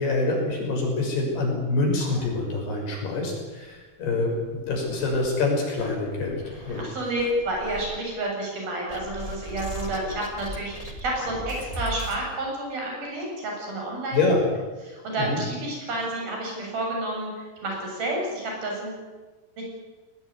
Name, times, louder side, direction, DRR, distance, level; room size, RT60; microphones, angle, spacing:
voice 1, 0.0-6.8 14.1-14.4 15.2-15.4, left 2 dB, 70° left, 0 dB, 8.3 m, -26 dB
sound 1, 2.0-2.9 3.2-3.3 3.7-3.8 4.4-5.3 5.8-6.8 7.2-7.9 8.9-12.2, right 1 dB, 10° left, 2.2 m, -38 dB
voice 2, 6.8-14.2 14.9-19.0 19.6-19.7, right 1 dB, 60° right, -1 dB, 9.4 m, -30 dB
21.0 x 20.0 x 9.7 m, 1.3 s
omnidirectional pair, 4.7 m